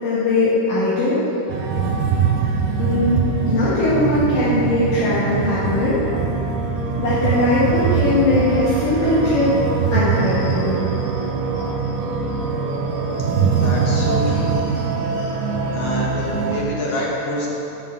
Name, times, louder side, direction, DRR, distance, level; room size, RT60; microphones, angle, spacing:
voice 1, 0.0-1.2 2.8-3.2 3.5-6.0 7.0-9.6 9.9-11.2 11.5-11.9 13.1-14.0 14.3-14.8 15.1-15.3 16.9-17.0, left 2 dB, 75° left, -11 dB, 3.2 m, -21 dB
sound 1, 1.5-16.6, right 5 dB, 90° right, 2.6 m, -22 dB
voice 2, 13.6-14.5 15.7-17.5, left 1 dB, 55° left, -4 dB, 2.2 m, -26 dB
8.5 x 6.1 x 7.5 m, 3.0 s
omnidirectional pair, 3.9 m